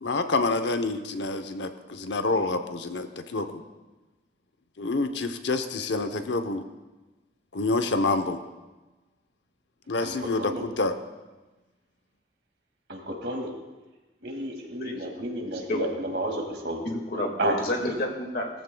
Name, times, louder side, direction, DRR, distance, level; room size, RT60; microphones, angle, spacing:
voice 1, 0.0-3.6 4.8-6.6 7.5-8.4 9.9-10.9, left 3 dB, 80° left, 8 dB, 0.8 m, -27 dB
voice 2, 10.0-10.6 12.9-13.5 14.2-16.8 17.4-17.5, right 1 dB, 75° right, 1 dB, 2.2 m, -32 dB
voice 3, 16.8-18.5, left 1 dB, 55° left, 2 dB, 1.9 m, -29 dB
18.0 x 14.5 x 2.3 m, 1.2 s
head